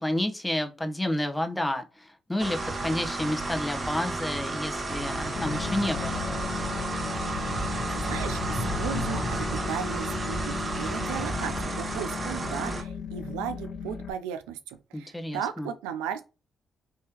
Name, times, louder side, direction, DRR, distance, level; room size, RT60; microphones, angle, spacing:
voice 1, 0.0-6.3 14.9-15.7, left 1 dB, 10° left, 0.9 m, -30 dB
sound 1, 2.4-12.8, right 3 dB, 45° right, 1.2 m, -32 dB
Animal, 3.6-12.1, left 3 dB, 45° left, 1.3 m, -38 dB
sound 2, 5.4-14.1, left 6 dB, 65° left, 0.4 m, -36 dB
voice 2, 7.7-16.2, right 9 dB, 90° right, 0.4 m, -36 dB
3.5 x 3.1 x 2.8 m
hypercardioid pair, 50°, 0 cm